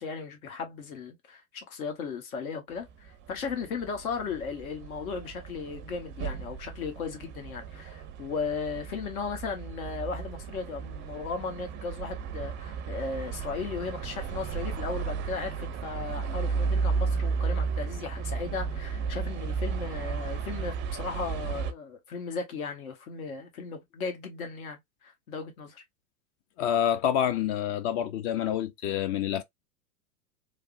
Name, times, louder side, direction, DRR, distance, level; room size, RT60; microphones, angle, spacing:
voice 1, 0.0-25.8, left 5 dB, 80° left, 1.1 m, -36 dB
sound 1, 2.9-21.7, right 5 dB, 25° right, 0.4 m, -34 dB
voice 2, 26.6-29.4, left 10 dB, 40° left, 0.4 m, -27 dB
3.3 x 2.0 x 2.4 m
hypercardioid pair, 105°, 42 cm